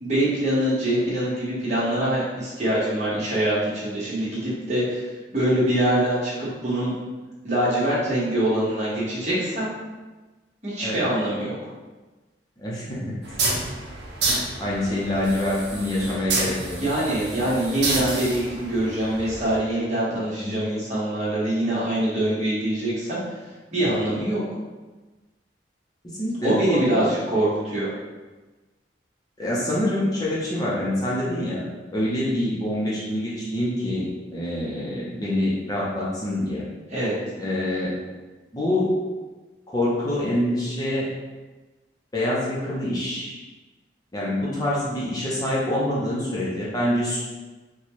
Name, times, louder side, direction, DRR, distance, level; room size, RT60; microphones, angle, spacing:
voice 1, 0.0-5.1 5.3-6.9 7.4-9.7 10.6-11.5 16.8-23.2 23.7-24.4 26.4-27.9 36.9-37.1, right 1 dB, 40° right, -8 dB, 1.3 m, -24 dB
voice 2, 12.6-13.1 14.6-16.8 20.4-20.6 26.2-27.1 29.4-31.6 31.9-36.7 37.4-37.9 38.5-38.9 39.7-41.1 42.1-43.4 44.1-47.2, left 1 dB, 20° left, -7 dB, 0.7 m, -26 dB
sound 1, 13.2-19.6, right 2 dB, 65° right, 0.7 m, -29 dB
4.2 x 2.3 x 3.1 m, 1.2 s
head